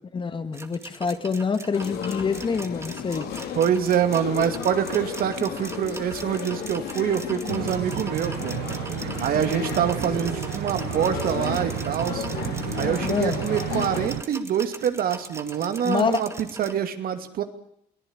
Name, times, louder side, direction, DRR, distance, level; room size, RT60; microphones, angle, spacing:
voice 1, 0.1-3.3 13.0-13.4 15.8-16.2, left 5 dB, 30° left, 10 dB, 1.9 m, -26 dB
sound 1, 0.5-16.7, right 3 dB, 15° right, 2.1 m, -41 dB
sound 2, 1.7-14.1, left 8 dB, 70° left, 3.6 m, -34 dB
voice 2, 3.6-8.5 9.2-12.3 12.8-17.4, right 9 dB, 60° right, 9 dB, 2.5 m, -25 dB
sound 3, 7.5-14.2, right 15 dB, 85° right, 1.0 m, -32 dB
22.5 x 17.5 x 8.8 m, 0.70 s
cardioid pair, 110°, 17 cm